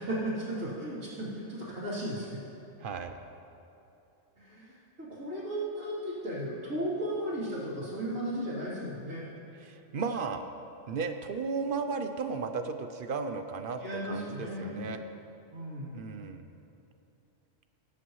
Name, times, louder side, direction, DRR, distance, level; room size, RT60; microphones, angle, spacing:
voice 1, 0.1-2.4 4.4-9.2 13.8-14.8 15.5-15.9, right 1 dB, 75° right, -14 dB, 3.5 m, -35 dB
voice 2, 2.8-3.1 9.6-10.4 10.9-15.0 15.9-16.4, right 5 dB, 55° right, 7 dB, 0.7 m, -34 dB
20.0 x 10.0 x 3.1 m, 2.9 s
omnidirectional pair, 1.4 m